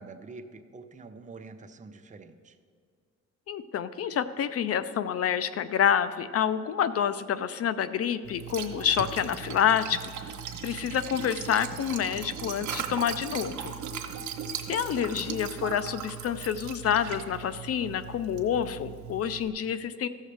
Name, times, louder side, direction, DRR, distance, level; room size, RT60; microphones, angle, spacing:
voice 1, 0.0-2.6 15.0-15.2, right 3 dB, 25° right, 7 dB, 0.6 m, -46 dB
voice 2, 3.5-10.3 10.6-13.7 14.7-20.1, left 9 dB, 55° left, 13 dB, 0.4 m, -28 dB
Liquid, 8.2-19.5, right 7 dB, 75° right, 1.1 m, -38 dB
15.0 x 6.4 x 3.3 m, 2.1 s
cardioid pair, 90°, 30 cm